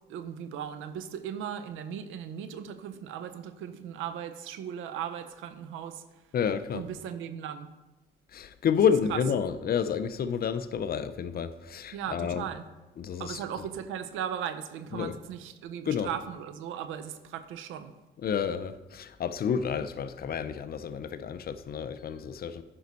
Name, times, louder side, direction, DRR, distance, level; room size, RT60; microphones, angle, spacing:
voice 1, 0.1-6.0 6.7-7.7 9.1-9.2 11.9-12.7 13.2-18.0, right 9 dB, 90° right, 0.6 m, -37 dB
voice 2, 6.3-6.8 8.3-12.4 13.0-13.4 14.9-15.2 15.9-16.1 18.2-22.6, left 7 dB, 50° left, 0.5 m, -29 dB
9.4 x 5.3 x 4.1 m
cardioid pair, 90°, 20 cm